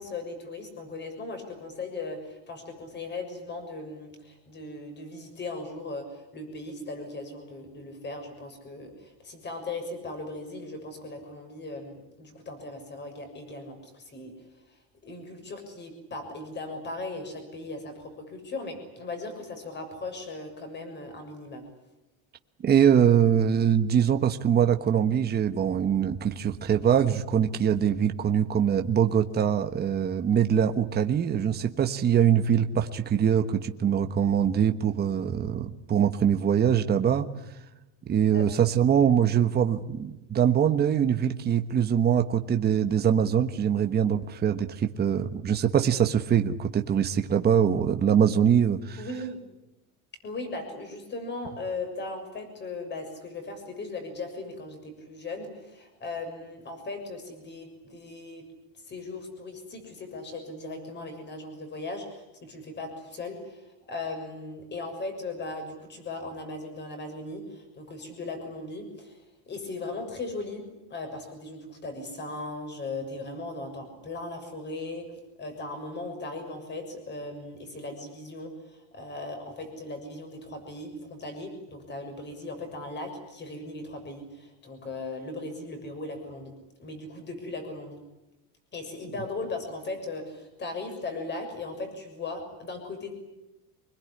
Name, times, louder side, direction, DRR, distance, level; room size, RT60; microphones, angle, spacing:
voice 1, 0.0-14.3 14.7-21.7 38.3-38.5 49.0-49.4 50.2-58.5 58.8-69.2 69.5-75.1 75.4-86.5 86.8-88.0 88.7-93.1, left 2 dB, 25° left, 6 dB, 6.8 m, -38 dB
voice 2, 22.6-37.3 38.1-49.0, right 8 dB, 25° right, 6 dB, 1.3 m, -23 dB
25.5 x 21.5 x 9.9 m, 0.97 s
cardioid pair, 160°, 41 cm